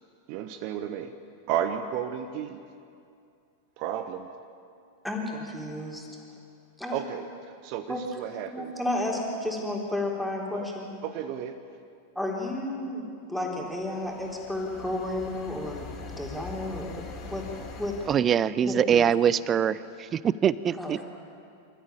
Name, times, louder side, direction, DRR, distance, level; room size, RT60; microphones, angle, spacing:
voice 1, 0.3-1.1 1.5-2.6 3.8-4.3 6.9-7.3 7.6-8.7 10.5-10.7 11.0-11.5, right 9 dB, 45° right, 9 dB, 1.0 m, -32 dB
voice 2, 5.0-6.1 6.8-7.0 7.9-8.0 8.5-10.9 12.2-15.9 16.2-17.4 17.8-17.9 18.6-19.0 20.8-21.1, left 1 dB, ahead, -2 dB, 4.0 m, -32 dB
sound 1, 13.5-18.2, left 4 dB, 30° left, 3.8 m, -43 dB
voice 3, 18.1-21.0, right 8 dB, 25° right, 18 dB, 0.6 m, -24 dB
26.5 x 14.0 x 8.9 m, 2.5 s
figure-of-eight pair, 95°, 0 cm